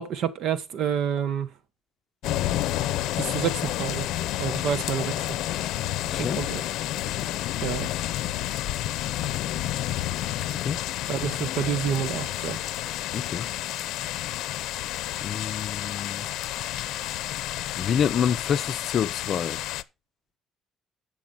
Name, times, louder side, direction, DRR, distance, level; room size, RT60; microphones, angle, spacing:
voice 1, 0.0-1.5 3.2-4.1 4.4-5.3 6.2-6.6 7.6-7.9 11.1-12.6, right 8 dB, 65° right, 1.2 m, -28 dB
sound 1, 2.2-19.8, left 14 dB, 85° left, 0.6 m, -30 dB
voice 2, 6.0-6.5 10.6-10.8 13.1-13.5 15.2-16.3 17.8-19.6, left 8 dB, 45° left, 0.6 m, -27 dB
8.9 x 6.9 x 5.6 m
cardioid pair, 155°, 0 cm